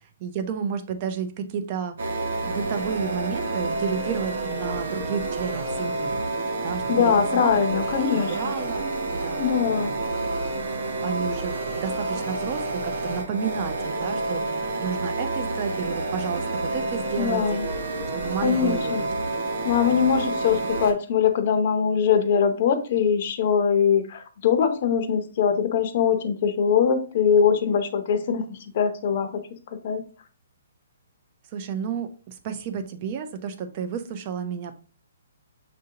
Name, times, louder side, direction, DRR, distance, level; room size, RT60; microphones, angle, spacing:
voice 1, 0.0-2.0 2.4-7.8 8.1-8.9 9.2-9.5 10.1-10.2 10.9-17.6 18.1-19.3 31.5-34.8, right 7 dB, 25° right, 8 dB, 0.5 m, -32 dB
sound 1, 2.0-20.9, right 2 dB, 55° right, 0.9 m, -29 dB
voice 2, 6.9-8.5 9.4-9.9 17.2-17.6 18.4-19.0 19.6-29.3 29.8-30.0, left 7 dB, 35° left, 7 dB, 0.6 m, -22 dB
6.4 x 2.5 x 2.8 m, 0.38 s
hypercardioid pair, 170°, 0 cm